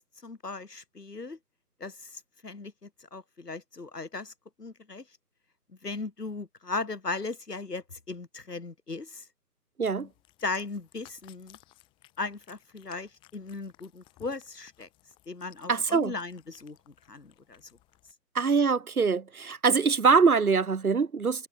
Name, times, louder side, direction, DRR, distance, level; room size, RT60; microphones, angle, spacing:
voice 1, 0.0-1.4 1.8-4.3 4.6-5.0 5.8-9.2 10.4-11.6 12.2-14.9 15.3-17.6, left 3 dB, 75° left, 2.9 m, -37 dB
Cat, 9.9-18.1, left 18 dB, 10° left, 3.2 m, -60 dB
voice 2, 15.7-16.1 18.3-21.5, right 5 dB, 60° right, 1.4 m, -23 dB
figure-of-eight pair, 150°, 48 cm